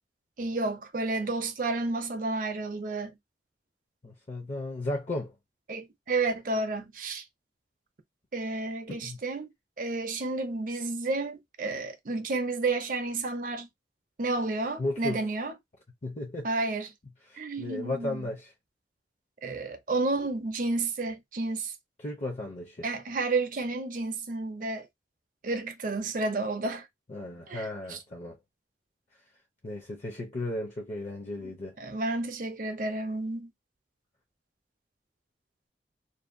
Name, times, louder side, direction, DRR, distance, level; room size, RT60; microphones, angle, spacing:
voice 1, 0.4-3.1 5.7-7.2 8.3-9.5 9.8-13.7 14.2-15.5 16.4-16.9 17.4-18.3 19.4-21.7 22.8-24.9 25.4-26.9 27.5-28.0 31.4-31.5 31.8-33.5, right 3 dB, 50° right, 0.6 m, -31 dB
voice 2, 4.0-5.3 9.0-9.2 14.8-15.2 16.0-16.5 17.3-18.5 22.0-22.9 27.1-28.4 29.6-31.8, left 2 dB, 40° left, 0.6 m, -35 dB
2.6 x 2.1 x 2.5 m
head